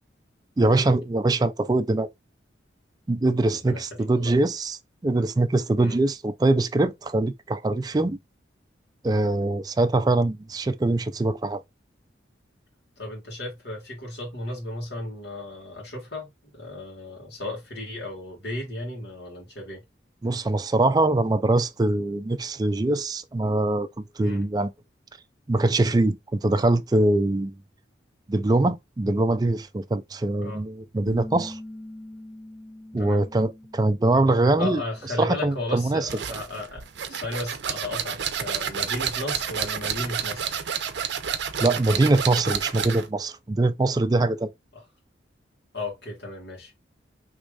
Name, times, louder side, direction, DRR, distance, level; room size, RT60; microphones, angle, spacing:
voice 1, 0.6-2.1 3.1-8.2 9.0-11.6 20.2-24.7 25.5-27.6 28.3-31.6 32.9-34.8 35.2-36.1 41.6-44.5, right 2 dB, 20° right, 0.3 m, -23 dB
voice 2, 3.5-4.3 5.8-6.0 13.0-19.8 24.2-24.4 30.4-30.6 33.0-33.2 34.6-40.6 44.7-44.8 45.7-46.7, left 2 dB, 60° left, 1.7 m, -35 dB
sound 1, 31.1-36.5, left 1 dB, 35° left, 1.0 m, -44 dB
sound 2, 36.1-43.1, right 7 dB, 65° right, 0.6 m, -30 dB
4.8 x 3.1 x 2.3 m
head